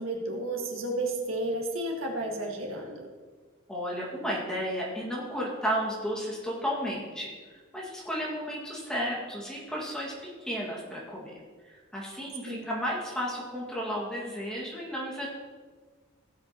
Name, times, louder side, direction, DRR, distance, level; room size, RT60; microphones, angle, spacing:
voice 1, 0.0-3.1 12.5-12.7, right 1 dB, 85° right, 0 dB, 1.8 m, -32 dB
voice 2, 3.7-10.1 10.4-11.3 11.6-15.3, equal, 5° left, -4 dB, 1.9 m, -33 dB
16.0 x 8.1 x 3.0 m, 1.5 s
head